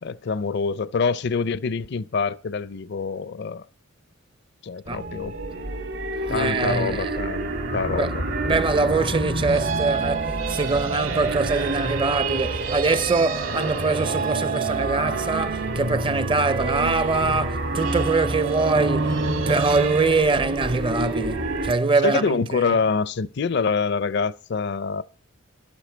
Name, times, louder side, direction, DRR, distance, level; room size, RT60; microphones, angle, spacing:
voice 1, 0.0-3.6 4.6-5.4 6.3-8.2 8.5-8.6 22.0-25.0, left 5 dB, 55° left, 0.5 m, -26 dB
sound 1, 4.9-21.7, right 3 dB, 70° right, 2.7 m, -27 dB
voice 2, 6.2-7.1 8.0-8.1 8.4-19.2 19.5-22.6, right 3 dB, 25° right, 0.5 m, -23 dB
12.0 x 11.5 x 4.5 m
head